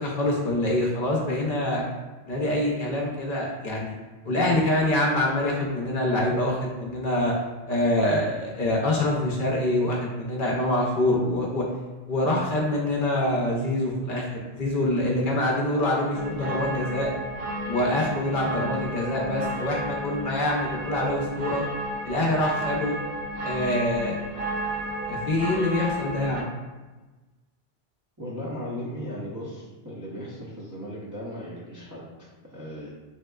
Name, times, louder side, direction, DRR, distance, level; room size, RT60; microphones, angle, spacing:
voice 1, 0.0-1.8 2.3-3.9 4.2-7.3 7.7-11.6 12.1-17.1 17.7-21.6 22.0-22.9 23.4-24.2 25.1-26.5, left 1 dB, 60° left, -2 dB, 0.7 m, -25 dB
sound 1, 16.1-26.4, right 1 dB, 90° right, 0.9 m, -32 dB
voice 2, 28.2-32.9, equal, 25° right, -8 dB, 0.4 m, -37 dB
3.3 x 2.8 x 2.2 m, 1.2 s
omnidirectional pair, 1.1 m